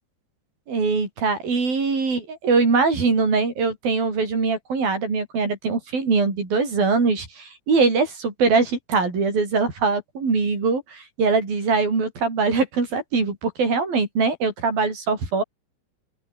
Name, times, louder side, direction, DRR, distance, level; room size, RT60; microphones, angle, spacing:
voice 1, 0.7-15.4, right 4 dB, 50° right, 8.7 m, -22 dB
open air
omnidirectional pair, 5.3 m